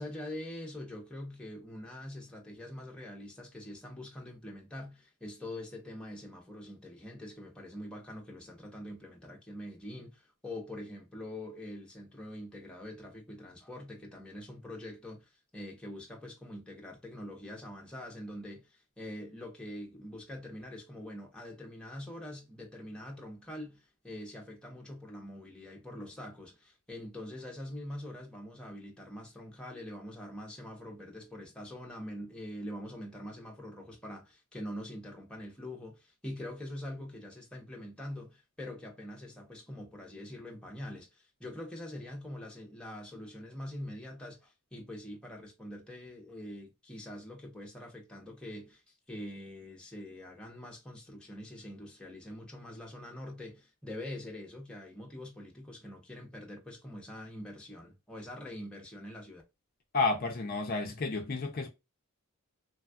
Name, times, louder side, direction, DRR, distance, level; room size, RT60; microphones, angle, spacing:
voice 1, 0.0-48.8 49.1-59.4, left 1 dB, 5° left, 0.7 m, -44 dB
voice 2, 59.9-61.7, left 3 dB, 40° left, 0.5 m, -31 dB
3.4 x 2.3 x 2.2 m
head